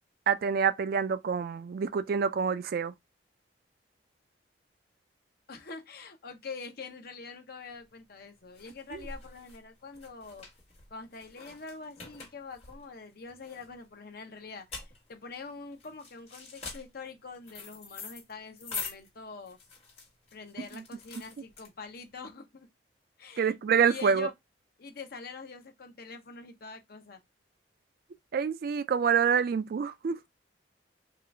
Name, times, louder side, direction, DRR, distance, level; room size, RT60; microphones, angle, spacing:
voice 1, 0.3-2.9 8.9-9.0 20.6-20.8 23.4-24.3 28.3-30.2, right 6 dB, 55° right, 0.3 m, -27 dB
voice 2, 5.5-10.5 10.9-19.6 20.3-22.7 23.2-24.3 24.8-27.2, left 4 dB, 55° left, 0.8 m, -45 dB
sound 1, 7.7-22.1, left 4 dB, 35° left, 1.6 m, -45 dB
3.7 x 2.4 x 3.3 m
head